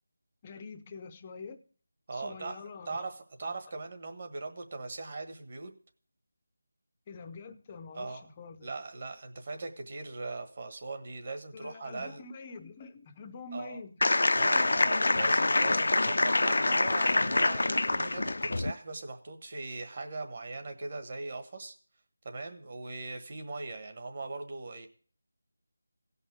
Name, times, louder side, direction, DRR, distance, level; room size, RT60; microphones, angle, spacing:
voice 1, 0.4-1.6 2.1-3.0 7.1-8.7 11.5-14.0 14.4-14.7, left 4 dB, 15° left, 0.7 m, -45 dB
voice 2, 2.1-5.7 7.9-8.3 8.6-12.2 13.5-13.8 14.4-21.7 22.2-24.9, right 3 dB, 30° right, 1.4 m, -40 dB
sound 1, 14.0-18.7, left 2 dB, 60° left, 0.5 m, -26 dB
16.5 x 5.6 x 8.0 m
figure-of-eight pair, 175°, 0 cm